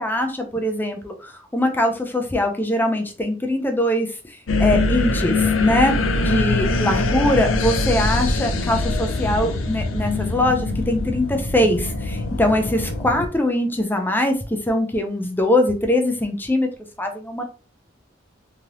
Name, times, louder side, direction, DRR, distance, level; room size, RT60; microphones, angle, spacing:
voice 1, 0.0-16.7 17.0-17.4, left 1 dB, 10° left, 5 dB, 0.5 m, -22 dB
sound 1, 4.5-13.3, left 2 dB, 90° left, 0.5 m, -23 dB
3.2 x 2.8 x 2.5 m, 0.35 s
head